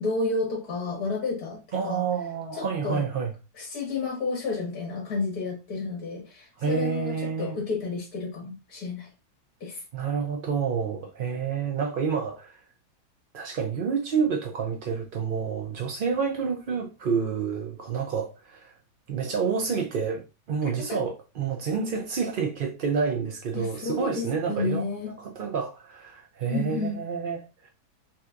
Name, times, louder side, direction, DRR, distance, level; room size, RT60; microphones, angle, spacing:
voice 1, 0.0-2.0 2.5-3.0 3.6-9.1 9.6-9.8 20.6-20.7 23.5-25.1 26.5-27.0, left 4 dB, 70° left, 1.9 m, -31 dB
voice 2, 1.7-3.3 6.6-7.6 9.9-12.6 13.3-18.7 19.1-27.7, right 6 dB, 60° right, 0.5 m, -29 dB
5.9 x 2.8 x 2.5 m
omnidirectional pair, 1.7 m